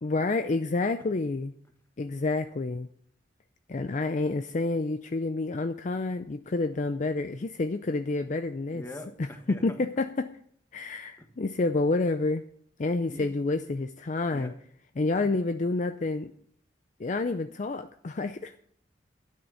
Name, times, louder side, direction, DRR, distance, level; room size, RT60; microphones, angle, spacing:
voice 1, 0.0-1.5 2.0-2.9 3.7-8.8 9.2-10.3 10.7-12.4 12.8-14.5 15.0-16.3 17.0-18.6, left 3 dB, 40° left, 9 dB, 0.5 m, -29 dB
voice 2, 8.7-9.8 11.2-11.3 13.1-13.3 14.3-14.5 15.1-15.3, left 1 dB, 15° left, 5 dB, 1.4 m, -43 dB
12.0 x 9.6 x 5.6 m, 0.63 s
head